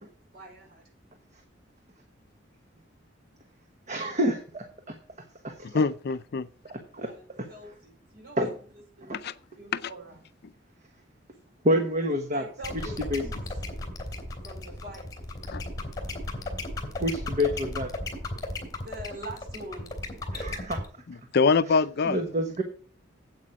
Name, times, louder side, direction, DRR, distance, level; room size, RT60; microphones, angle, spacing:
voice 1, 0.3-0.9 6.9-8.6 9.0-10.2 12.3-13.4 14.4-15.1 18.7-19.9, right 1 dB, 55° right, 5.2 m, -44 dB
voice 2, 3.9-4.9 5.4-5.8 6.7-7.1 7.4-7.5 8.4-8.5 9.0-9.2 11.6-12.4 13.1-13.2 17.0-17.9 20.3-20.8 22.1-22.6, equal, 40° right, 1.2 m, -28 dB
voice 3, 5.6-6.5 9.1-9.3 9.7-9.8 15.5-15.6 21.1-22.2, left 4 dB, 55° left, 0.5 m, -24 dB
sound 1, 12.6-20.9, left 2 dB, 20° left, 2.9 m, -34 dB
8.7 x 8.3 x 4.9 m
head